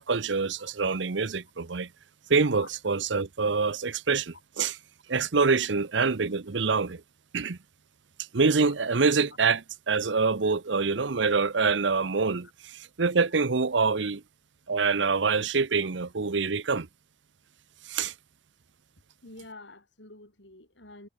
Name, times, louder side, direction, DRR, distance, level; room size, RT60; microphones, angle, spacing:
voice 1, 0.0-1.9 2.3-4.8 5.1-7.0 7.3-7.6 8.3-14.2 14.7-16.9 17.9-18.1, right 4 dB, 70° right, 0.8 m, -25 dB
voice 2, 19.2-21.1, left 2 dB, 70° left, 6.6 m, -48 dB
head